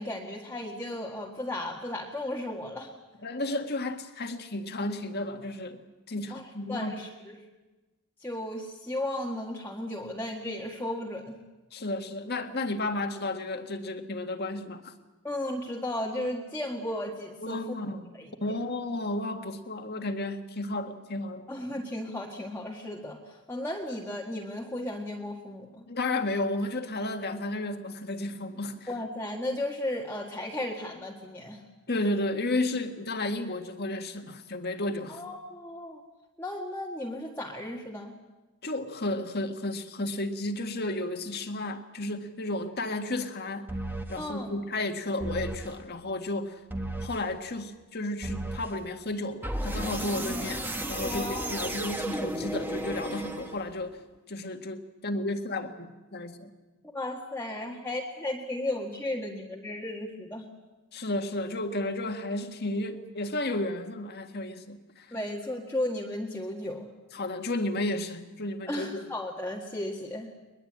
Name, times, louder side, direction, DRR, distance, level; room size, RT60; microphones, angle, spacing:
voice 1, 0.0-2.9 6.3-7.4 8.2-11.4 15.2-17.6 18.1-18.6 21.5-25.9 28.9-31.6 35.1-36.0 36.4-38.1 44.1-44.5 51.0-51.8 56.9-60.5 65.1-66.9 68.7-70.3, left 1 dB, 10° left, -3 dB, 1.8 m, -35 dB
voice 2, 3.2-5.8 6.1-7.0 11.7-14.9 17.4-18.0 18.4-21.5 25.9-28.9 31.9-35.2 38.6-43.7 44.1-46.6 47.0-54.0 54.3-56.5 60.9-65.1 67.1-69.1, left 2 dB, 45° left, 6 dB, 1.9 m, -33 dB
sound 1, 43.7-44.2 45.2-45.8 46.7-47.3 48.2-48.8 49.4-53.8, right 1 dB, 10° right, 1.5 m, -34 dB
22.0 x 21.5 x 8.9 m, 1.2 s
head